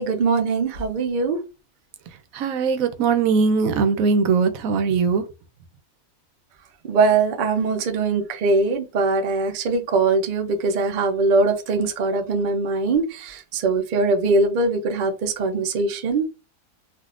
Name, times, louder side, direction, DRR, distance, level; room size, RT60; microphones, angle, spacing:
voice 1, 0.0-1.4 6.8-16.2, right 3 dB, 90° right, 0.4 m, -21 dB
voice 2, 2.3-5.2, right 5 dB, 75° right, 1.0 m, -20 dB
3.6 x 2.4 x 2.4 m
omnidirectional pair, 1.5 m